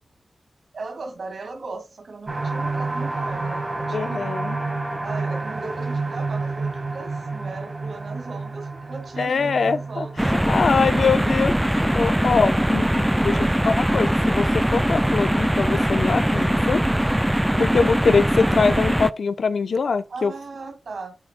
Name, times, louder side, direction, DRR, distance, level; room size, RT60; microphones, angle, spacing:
voice 1, 0.7-4.5 5.0-11.1 12.1-12.5 13.2-13.6 17.5-17.8 20.1-21.2, right 3 dB, 80° right, 1.9 m, -37 dB
sound 1, 2.3-15.8 16.2-16.3 16.7-16.8, right 3 dB, 45° right, 1.6 m, -31 dB
Trumpet, 3.1-5.6, left 2 dB, 25° left, 2.1 m, -38 dB
voice 2, 3.9-4.6 9.2-10.1 10.5-16.8 17.6-20.3, left 5 dB, 90° left, 0.7 m, -23 dB
sound 2, 10.2-19.1, equal, 5° right, 0.3 m, -21 dB
8.3 x 6.9 x 2.2 m
wide cardioid pair, 115°, 0 cm